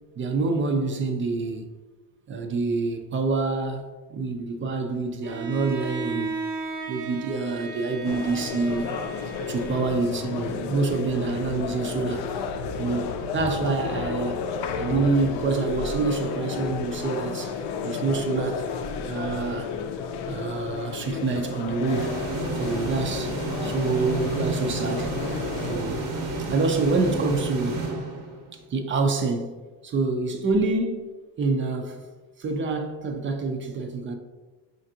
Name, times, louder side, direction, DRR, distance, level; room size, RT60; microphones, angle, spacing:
voice 1, 0.2-1.7 2.3-6.3 6.9-8.9 9.5-12.3 12.8-14.4 14.7-18.6 19.1-19.7 20.3-22.1 22.6-23.4 23.6-25.1 25.6-26.1 26.5-27.8 28.5-29.5 29.8-31.1 31.4-32.0 32.4-34.1, right 3 dB, 30° right, 0.4 m, -27 dB
Bowed string instrument, 5.2-10.2, right 4 dB, 70° right, 0.8 m, -35 dB
sound 1, 8.0-25.8, left 5 dB, 70° left, 0.5 m, -32 dB
sound 2, 21.9-28.6, right 2 dB, 85° right, 1.1 m, -31 dB
5.1 x 2.5 x 2.7 m
cardioid pair, 120°, 43 cm